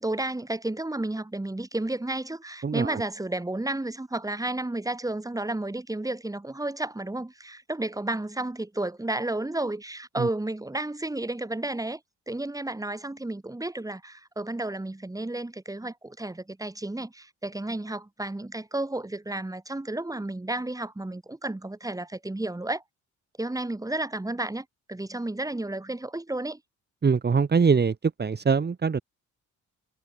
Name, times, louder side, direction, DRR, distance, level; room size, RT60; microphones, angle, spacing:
voice 1, 0.0-12.0 12.3-22.8 23.4-26.6, right 2 dB, 10° right, 5.6 m, -32 dB
voice 2, 2.6-3.0 10.2-10.3 27.0-27.9 28.2-29.0, right 5 dB, 35° right, 2.7 m, -23 dB
cardioid pair, 90°, 30 cm